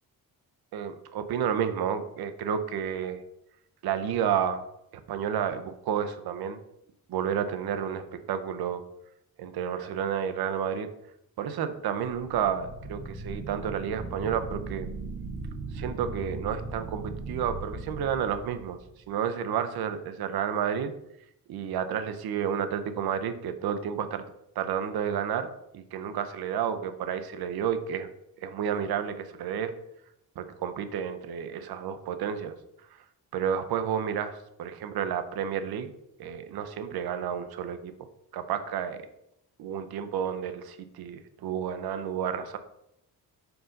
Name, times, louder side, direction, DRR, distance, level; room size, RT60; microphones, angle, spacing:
voice 1, 0.7-3.2 3.8-4.6 5.1-6.6 7.1-8.8 9.4-10.9 11.4-14.9 15.7-18.8 19.1-20.9 21.5-24.2 24.6-28.1 28.4-29.7 30.4-32.5 33.3-35.9 36.2-37.9 38.3-39.1 39.6-42.6, right 8 dB, 85° right, 9 dB, 0.7 m, -31 dB
sound 1, 12.2-19.0, right 2 dB, 45° right, 2.0 m, -38 dB
4.7 x 3.9 x 5.2 m, 0.80 s
cardioid pair, 120°, 37 cm